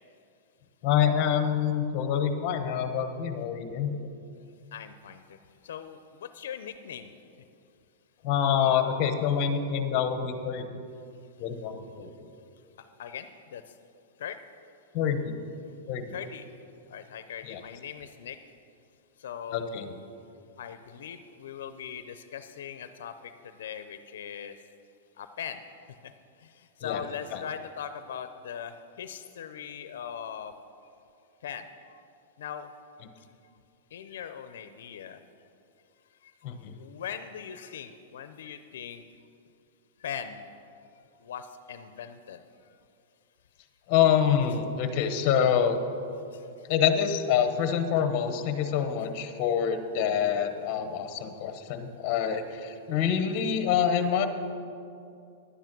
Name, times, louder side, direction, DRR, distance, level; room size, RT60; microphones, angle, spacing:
voice 1, 0.8-3.9 8.2-10.6 11.4-12.1 14.9-15.4 15.9-16.0 17.4-17.6 19.5-19.9 26.8-27.0 27.3-27.4 36.4-36.7 43.9-45.8 46.7-54.3, left 8 dB, 35° left, 8 dB, 0.9 m, -26 dB
voice 2, 4.7-7.1 11.5-11.6 12.0-12.1 12.8-13.8 14.2-14.4 16.1-16.5 16.9-18.6 19.2-19.9 20.6-24.6 25.2-30.6 31.4-32.0 32.4-32.7 33.2-33.3 33.9-35.5 36.1-39.2 40.0-40.4 40.9-42.8 46.3-46.7 48.8-49.1, left 8 dB, 75° left, 10 dB, 0.6 m, -41 dB
11.0 x 9.3 x 6.0 m, 2.5 s
supercardioid pair, 165°, 0 cm